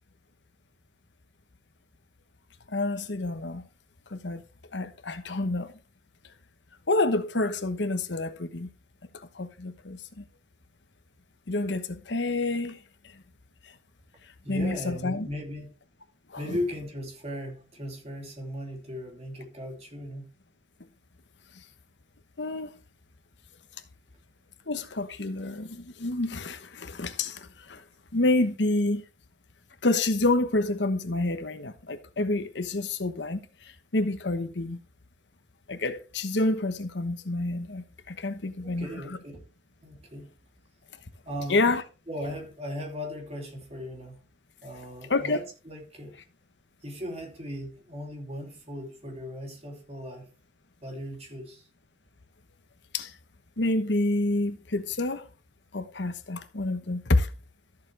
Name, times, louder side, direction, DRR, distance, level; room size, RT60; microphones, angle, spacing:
voice 1, 2.7-3.6 4.1-4.4 4.7-5.7 6.9-8.7 9.1-10.2 11.5-12.8 13.0-13.2 14.5-15.3 16.3-16.6 22.4-22.7 24.7-27.8 28.1-29.0 29.8-34.8 35.7-38.9 41.5-41.8 45.1-45.4 52.9-53.1 53.6-55.3 55.7-57.3, left 2 dB, 70° left, 1.1 m, -28 dB
voice 2, 14.4-15.7 16.4-20.3 38.6-39.4 39.8-40.3 41.2-41.6 42.1-44.2 44.6-46.2 46.8-50.3 50.8-51.7, equal, 35° right, 3.0 m, -37 dB
13.5 x 7.4 x 3.4 m
head